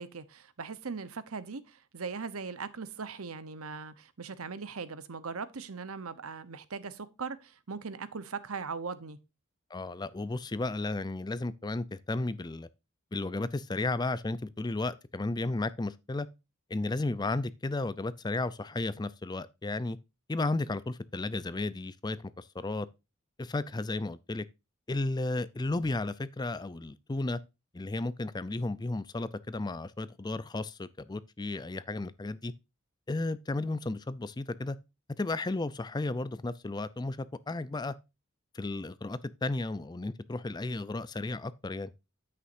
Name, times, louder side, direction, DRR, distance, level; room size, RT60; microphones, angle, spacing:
voice 1, 0.0-9.2, right 5 dB, 85° right, 0.9 m, -39 dB
voice 2, 9.7-12.7 13.1-16.3 16.7-20.0 20.3-22.9 23.4-24.4 24.9-27.4 27.7-32.5 33.1-34.8 35.2-37.9 38.5-41.9, left 2 dB, 20° left, 0.4 m, -33 dB
9.6 x 8.4 x 2.6 m
head